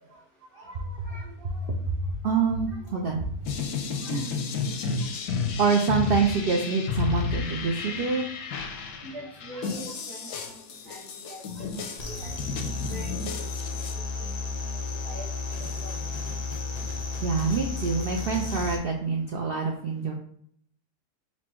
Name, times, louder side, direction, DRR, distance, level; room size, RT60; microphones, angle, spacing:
voice 1, 0.5-3.5 4.0-4.4 5.6-8.2 17.2-20.1, right 5 dB, 85° right, 1 dB, 0.5 m, -27 dB
sound 1, 3.5-13.9, left 5 dB, 85° left, 1.2 m, -32 dB
voice 2, 9.0-11.7 12.0-12.3 12.9-13.3 14.0-14.3 14.6-15.5 15.8-15.9, equal, 50° right, -2 dB, 1.3 m, -43 dB
sound 2, 12.0-18.8, left 4 dB, 70° left, 0.3 m, -33 dB
4.2 x 2.2 x 4.4 m, 0.64 s
omnidirectional pair, 1.6 m